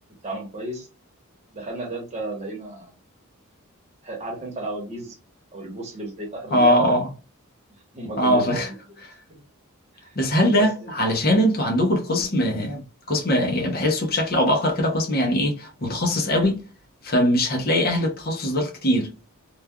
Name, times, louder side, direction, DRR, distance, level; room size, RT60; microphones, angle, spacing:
voice 1, 0.2-0.9 1.5-2.9 4.0-5.2 5.5-7.0 7.9-9.0 9.3-9.4 9.9-10.2 10.6-11.0, right 1 dB, 30° right, 1.0 m, -33 dB
voice 2, 6.5-7.1 8.2-8.7 10.2-16.6 17.0-19.1, equal, 45° left, 0.7 m, -21 dB
3.2 x 2.3 x 2.2 m
head